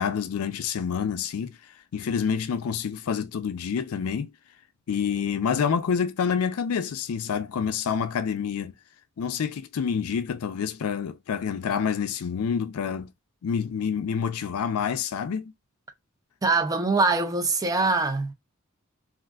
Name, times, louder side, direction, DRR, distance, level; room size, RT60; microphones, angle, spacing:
voice 1, 0.0-1.6 1.9-4.3 4.9-8.7 9.2-13.1 13.4-15.5, left 7 dB, 85° left, 0.4 m, -27 dB
voice 2, 16.4-18.3, right 3 dB, 15° right, 0.4 m, -23 dB
3.5 x 2.4 x 2.2 m
head